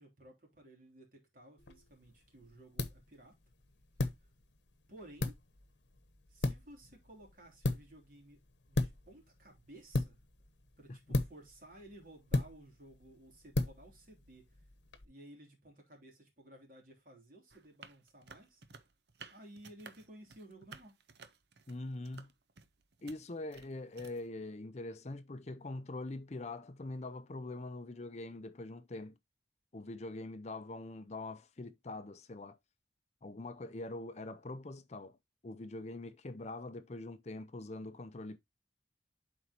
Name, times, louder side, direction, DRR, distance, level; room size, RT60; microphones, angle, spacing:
voice 1, 0.0-3.3 4.9-5.4 6.3-8.4 8.7-10.2 10.8-14.6 15.0-18.6 19.3-20.9, right 1 dB, 50° right, 3.2 m, -56 dB
sound 1, 1.6-15.0, left 2 dB, 80° left, 1.0 m, -38 dB
sound 2, 17.5-24.3, right 5 dB, 70° right, 0.8 m, -55 dB
voice 2, 21.7-22.3 23.0-29.1 29.7-32.6 33.2-35.2 35.4-38.4, left 2 dB, 40° left, 0.6 m, -43 dB
11.0 x 4.5 x 2.9 m
head